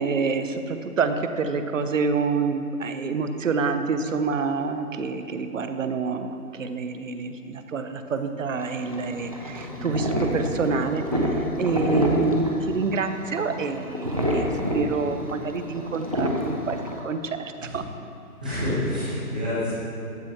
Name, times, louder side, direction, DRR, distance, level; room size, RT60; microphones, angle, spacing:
voice 1, 0.0-14.5 14.7-16.8 17.0-17.8, right 4 dB, 55° right, 8 dB, 0.8 m, -27 dB
sound 1, 8.6-17.0, equal, 25° right, 0.6 m, -27 dB
voice 2, 18.4-19.7, left 1 dB, 5° right, -14 dB, 0.9 m, -28 dB
14.5 x 10.0 x 2.9 m, 2.6 s
hypercardioid pair, 180°, 45 cm